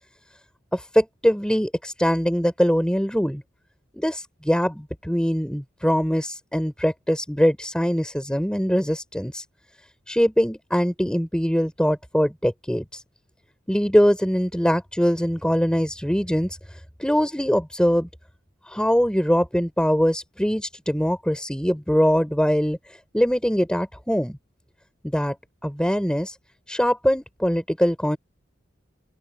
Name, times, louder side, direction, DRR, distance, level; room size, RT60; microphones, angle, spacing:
voice 1, 0.7-3.4 3.9-9.4 10.1-13.0 13.7-16.6 17.0-18.1 18.7-22.8 23.1-24.4 25.0-25.4 25.6-26.4 26.7-28.2, equal, 5° left, 3.8 m, -22 dB
head